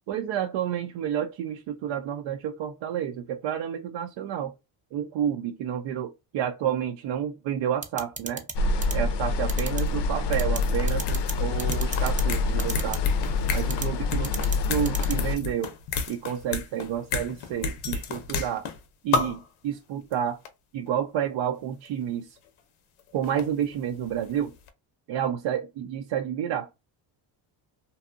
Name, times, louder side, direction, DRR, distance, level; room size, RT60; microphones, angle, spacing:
voice 1, 0.1-4.5 4.9-8.4 8.9-13.0 13.5-14.3 14.7-15.7 16.1-18.6 19.0-20.4 20.7-22.4 23.1-24.5 25.1-26.7, right 9 dB, 70° right, 0.5 m, -30 dB
sound 1, 7.8-8.5 8.8-8.9 9.5-9.8 10.4-10.6 10.9-11.3 11.6-12.2 12.6-13.0 13.7-13.9 14.2-14.6 14.8-15.1, right 4 dB, 15° right, 0.5 m, -33 dB
sound 2, 8.5-15.3, left 3 dB, 55° left, 0.5 m, -26 dB
sound 3, 9.4-9.5 9.7-18.8 19.1-19.5 20.1-20.2 20.5-20.6 21.9-22.0 23.0-24.4 24.7-24.8, left 4 dB, 90° left, 0.7 m, -32 dB
2.6 x 2.3 x 2.4 m
cardioid pair, 85°, 49 cm